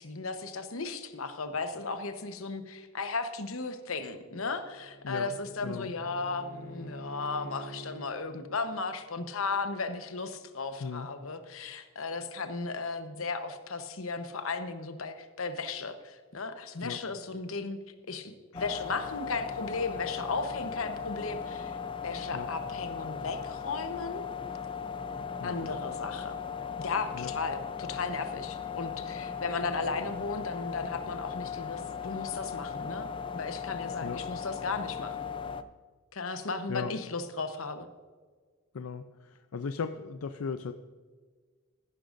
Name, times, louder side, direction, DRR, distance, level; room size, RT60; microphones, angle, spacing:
voice 1, 0.0-17.8 18.1-21.8 22.0-24.3 25.4-26.4 26.8-35.2 36.1-37.9, left 4 dB, 75° left, 8 dB, 1.0 m, -35 dB
Bowed string instrument, 4.2-8.1, equal, 45° left, 1.0 m, -46 dB
sound 1, 18.5-35.6, left 6 dB, 25° left, 0.5 m, -38 dB
voice 2, 25.4-25.8 27.1-27.3 34.0-34.2 36.2-36.4 36.7-36.9 38.7-40.7, left 5 dB, 90° left, 9 dB, 0.5 m, -37 dB
15.0 x 11.5 x 2.6 m, 1.5 s
head